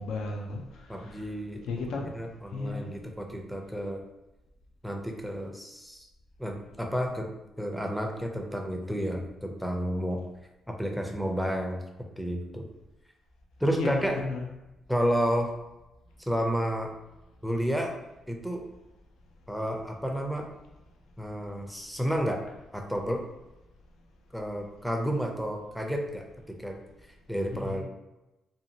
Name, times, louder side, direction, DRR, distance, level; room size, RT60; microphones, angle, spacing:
voice 1, 0.0-1.3 1.7-2.1 2.5-2.9 13.7-14.4 27.5-27.8, left 3 dB, 80° left, 1 dB, 0.4 m, -34 dB
voice 2, 0.9-1.6 2.1-4.0 4.8-6.1 6.4-7.3 7.6-10.2 10.7-11.8 12.2-12.6 13.6-14.2 14.9-15.5 16.2-16.9 17.4-17.9 18.3-18.7 19.5-20.5 21.2-22.5 22.7-23.2 24.3-26.3 26.6-26.8 27.3-27.8, equal, ahead, 2 dB, 0.5 m, -31 dB
2.6 x 2.4 x 2.8 m, 0.98 s
cardioid pair, 90°, 0 cm